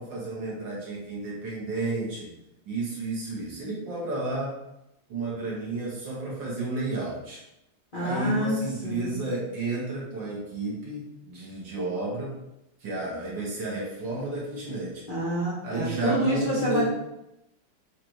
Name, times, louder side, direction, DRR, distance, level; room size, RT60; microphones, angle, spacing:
voice 1, 0.0-2.3 2.7-4.5 5.1-7.4 8.0-12.3 12.8-15.0 15.6-16.8, right 2 dB, 60° right, -5 dB, 2.0 m, -32 dB
voice 2, 7.9-8.6 8.8-9.2 15.1-16.8, right 1 dB, 45° left, -8 dB, 0.6 m, -27 dB
6.6 x 2.5 x 3.0 m, 0.88 s
omnidirectional pair, 2.4 m